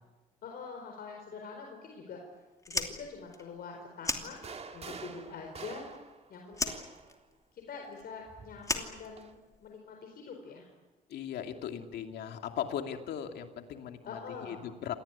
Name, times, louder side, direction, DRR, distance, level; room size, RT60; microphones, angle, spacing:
voice 1, 0.4-2.2 2.7-4.5 4.7-5.9 6.3-6.9 7.5-10.7 14.1-14.6, left 5 dB, 65° left, 2 dB, 4.4 m, -45 dB
Fire, 2.6-4.9 5.2-6.2 6.5-9.7, left 2 dB, 20° left, 2.7 m, -37 dB
sound 1, 4.3-7.2 8.3-9.3, right 5 dB, 40° right, 2.6 m, -47 dB
voice 2, 11.1-14.9, left 9 dB, 85° left, 5 dB, 2.6 m, -38 dB
27.0 x 18.5 x 9.8 m, 1.2 s
cardioid pair, 100°, 17 cm